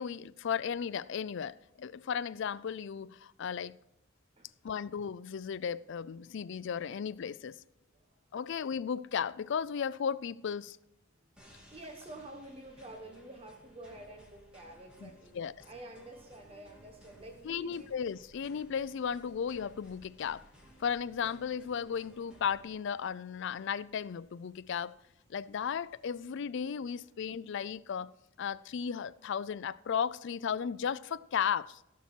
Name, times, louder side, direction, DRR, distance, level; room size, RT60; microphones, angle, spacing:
voice 1, 0.0-3.8 4.6-7.6 8.3-10.8 15.0-15.5 17.5-20.4 20.8-24.9 25.3-28.1 28.4-31.8, left 7 dB, 65° left, 0.4 m, -35 dB
sound 1, 11.4-22.7, equal, 5° right, 2.4 m, -59 dB
voice 2, 11.4-15.3 15.6-17.9, right 1 dB, 30° right, 1.3 m, -49 dB
sound 2, 15.0-26.1, left 1 dB, 15° left, 3.0 m, -69 dB
16.5 x 7.2 x 4.5 m
head